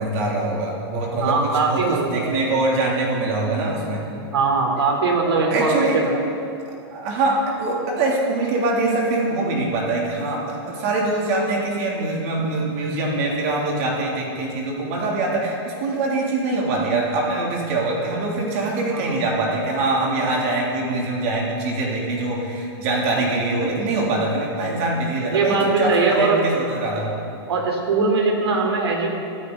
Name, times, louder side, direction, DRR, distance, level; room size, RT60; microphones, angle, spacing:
voice 1, 0.0-4.0 5.5-6.0 6.9-27.1, right 2 dB, 35° right, -2 dB, 3.1 m, -23 dB
voice 2, 1.1-2.3 4.1-6.2 18.9-19.2 25.3-26.4 27.5-29.1, right 4 dB, 90° right, 1 dB, 4.0 m, -21 dB
24.0 x 14.5 x 4.1 m, 2.6 s
supercardioid pair, 175°, 13 cm